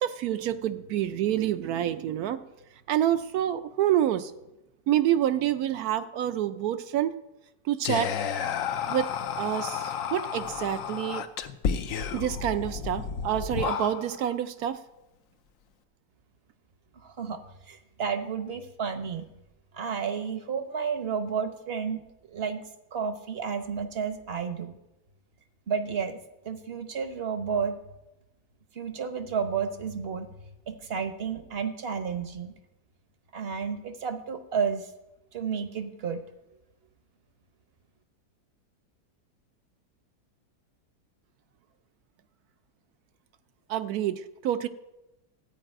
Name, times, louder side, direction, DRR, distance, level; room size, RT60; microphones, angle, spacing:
voice 1, 0.0-2.4 2.9-4.3 4.9-7.1 7.7-8.1 8.9-9.1 9.4-11.2 12.1-14.8 43.7-44.7, right 11 dB, 70° right, 11 dB, 1.0 m, -27 dB
Whispering, 7.8-14.3, left 7 dB, 65° left, 0.9 m, -32 dB
voice 2, 16.9-17.4 17.7-19.3 19.7-22.0 22.3-22.6 22.9-24.7 25.7-26.2 26.4-27.8 28.7-30.3 30.7-32.5 33.3-34.9 35.3-36.2, right 6 dB, 45° right, 9 dB, 0.9 m, -31 dB
13.5 x 4.9 x 8.9 m, 0.94 s
omnidirectional pair, 1.8 m